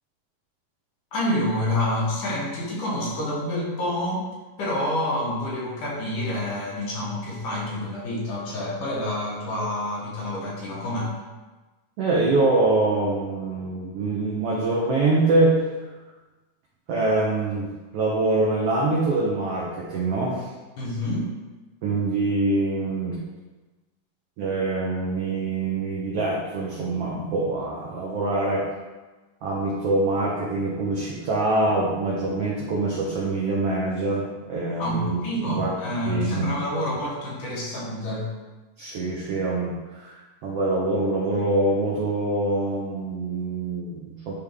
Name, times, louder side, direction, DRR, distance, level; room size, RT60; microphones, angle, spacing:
voice 1, 1.1-4.3 4.6-11.1 20.8-21.3 34.8-38.3, left 1 dB, 70° left, -4 dB, 2.8 m, -28 dB
voice 2, 12.0-15.6 16.9-17.7 17.9-20.5 21.8-23.2 24.4-28.6 29.4-35.7 36.1-36.5 38.8-44.3, right 2 dB, 70° right, -4 dB, 1.4 m, -24 dB
10.0 x 3.4 x 3.6 m, 1.2 s
omnidirectional pair, 3.9 m